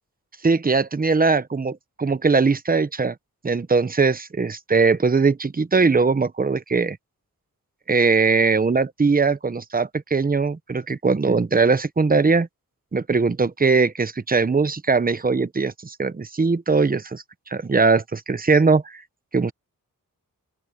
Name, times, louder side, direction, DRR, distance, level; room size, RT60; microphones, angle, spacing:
voice 1, 0.4-3.1 3.4-7.0 7.9-12.5 12.9-17.2 17.5-19.0 19.3-19.5, right 4 dB, 25° right, 1.0 m, -20 dB
open air
cardioid pair, 90°, 35 cm